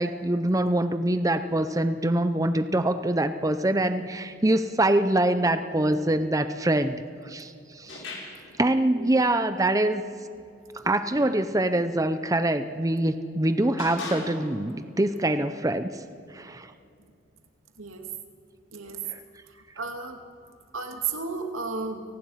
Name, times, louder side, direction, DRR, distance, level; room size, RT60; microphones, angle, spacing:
voice 1, 0.0-8.0 8.6-10.0 10.8-16.0 16.3-16.7 19.1-19.2, right 1 dB, 15° right, 10 dB, 0.6 m, -24 dB
sound 1, 7.9-8.5 10.8-11.4 12.5-12.7 13.8-14.6, left 3 dB, 65° left, 5.4 m, -39 dB
voice 2, 8.9-9.2 17.8-18.1 18.7-19.0 19.8-20.2 20.7-22.0, right 4 dB, 90° right, 4 dB, 2.4 m, -33 dB
30.0 x 18.5 x 5.8 m, 2.5 s
head